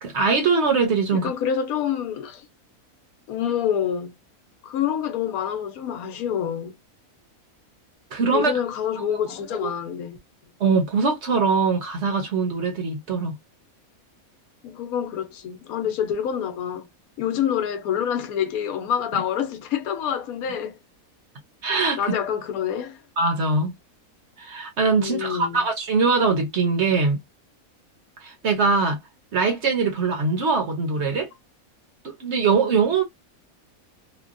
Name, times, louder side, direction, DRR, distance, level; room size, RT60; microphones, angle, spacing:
voice 1, 0.0-1.3 8.1-8.5 9.0-9.1 9.5-9.7 10.6-13.3 21.6-22.0 23.2-23.7 24.4-27.2 28.2-29.0 29.3-31.3 32.0-33.0, right 4 dB, 55° right, 1.1 m, -22 dB
voice 2, 1.1-2.5 3.3-4.1 4.6-6.7 8.3-10.2 14.6-16.9 17.2-20.8 21.9-23.0 25.0-25.6, left 9 dB, 80° left, 1.1 m, -27 dB
3.2 x 2.2 x 2.4 m
omnidirectional pair, 1.5 m